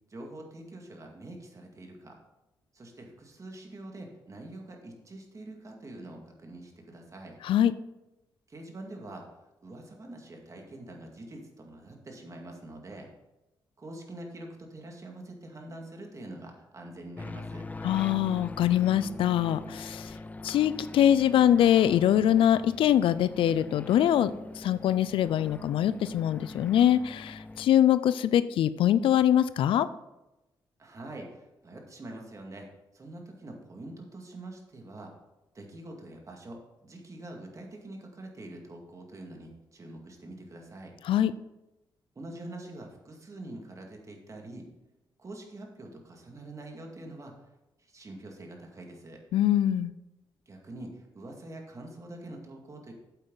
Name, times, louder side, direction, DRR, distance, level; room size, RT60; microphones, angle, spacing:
voice 1, 0.1-2.2 2.7-7.4 8.5-9.2 9.6-13.1 13.8-17.7 30.8-32.7 32.9-35.1 35.5-40.9 42.2-44.7 45.2-47.3 47.8-49.2 50.5-52.9, right 1 dB, 35° right, 1 dB, 2.1 m, -45 dB
sound 1, 17.2-27.7, left 2 dB, 20° left, 0.4 m, -43 dB
voice 2, 17.8-20.2 20.4-29.9 41.0-41.3 49.3-49.9, left 11 dB, 80° left, 15 dB, 0.4 m, -23 dB
8.3 x 8.0 x 4.0 m, 0.97 s
cardioid pair, 75°, 9 cm